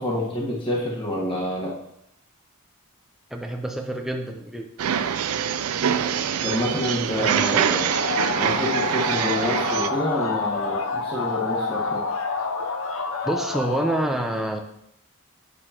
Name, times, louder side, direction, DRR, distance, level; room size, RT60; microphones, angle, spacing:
voice 1, 0.0-1.8 6.4-7.9 8.4-12.0, left 1 dB, 25° left, -4 dB, 1.4 m, -27 dB
voice 2, 3.3-4.7 7.1-7.6 13.2-14.6, right 1 dB, ahead, 2 dB, 0.6 m, -27 dB
sound 1, 4.8-9.9, right 8 dB, 80° right, 0.4 m, -24 dB
sound 2, 7.8-14.0, left 3 dB, 65° left, 0.7 m, -28 dB
8.9 x 6.5 x 2.9 m, 0.77 s
head